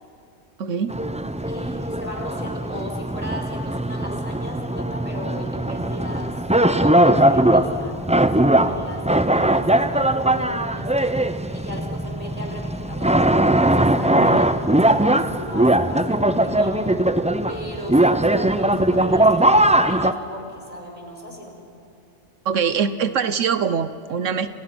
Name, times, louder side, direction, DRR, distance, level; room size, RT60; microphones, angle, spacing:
voice 1, 0.6-0.9 14.2-14.4 22.4-24.5, right 7 dB, 70° right, 12 dB, 1.2 m, -23 dB
sound 1, 0.9-20.1, right 1 dB, 10° right, 0.4 m, -20 dB
voice 2, 1.5-6.4 6.8-8.0 8.3-11.1 11.5-13.3 13.7-16.8 17.5-21.6, equal, 30° left, 1 dB, 5.6 m, -36 dB
29.5 x 29.0 x 6.1 m, 2.8 s
omnidirectional pair, 1.3 m